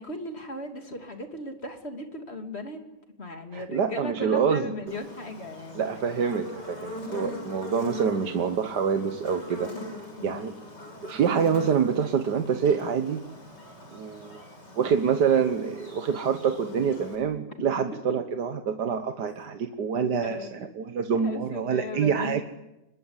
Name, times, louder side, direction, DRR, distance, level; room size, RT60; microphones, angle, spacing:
voice 1, 0.0-2.8 3.2-5.9 7.1-7.5 10.2-10.4 17.9-18.0 20.2-22.4, left 2 dB, 35° left, 5 dB, 3.1 m, -37 dB
voice 2, 3.5-4.7 5.8-9.7 10.2-10.5 11.0-13.2 13.9-14.4 14.8-22.4, right 7 dB, 70° right, 7 dB, 1.8 m, -26 dB
Buzz, 4.9-17.2, left 1 dB, 75° left, 7.7 m, -42 dB
25.5 x 22.0 x 9.8 m, 0.96 s
omnidirectional pair, 1.9 m